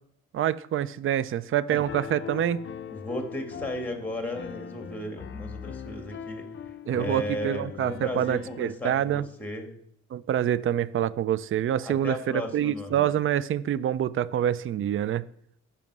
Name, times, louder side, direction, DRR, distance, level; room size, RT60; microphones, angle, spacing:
voice 1, 0.3-2.6 6.9-9.2 10.1-15.3, right 10 dB, 45° right, 0.4 m, -26 dB
Piano, 1.9-8.7, left 7 dB, 40° left, 0.5 m, -40 dB
voice 2, 2.9-9.7 11.8-13.1, left 1 dB, 5° left, 1.7 m, -35 dB
7.1 x 5.7 x 6.1 m
cardioid pair, 90°, 30 cm